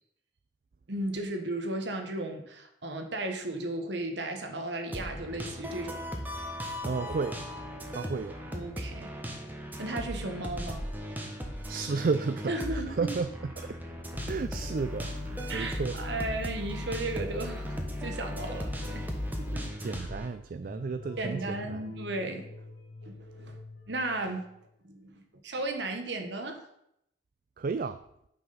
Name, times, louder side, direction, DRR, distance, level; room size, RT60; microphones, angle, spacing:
voice 1, 0.9-6.0 8.5-9.1 9.8-10.9 12.5-13.2 15.5-19.1 19.4-19.7 20.0-20.1 21.2-22.6 23.1-23.6 23.9-24.4 24.8-26.7, right 2 dB, 65° right, 5 dB, 1.2 m, -35 dB
sound 1, 4.9-20.3, equal, 10° right, 1.2 m, -38 dB
voice 2, 6.8-7.4 7.9-8.4 11.7-13.8 14.3-16.0 19.8-21.8 27.6-28.0, right 4 dB, 50° right, 11 dB, 0.4 m, -33 dB
sound 2, 14.1-19.7, left 2 dB, 45° left, 0.6 m, -39 dB
sound 3, 20.6-24.7, left 2 dB, 65° left, 1.6 m, -47 dB
8.8 x 6.2 x 5.5 m, 0.76 s
head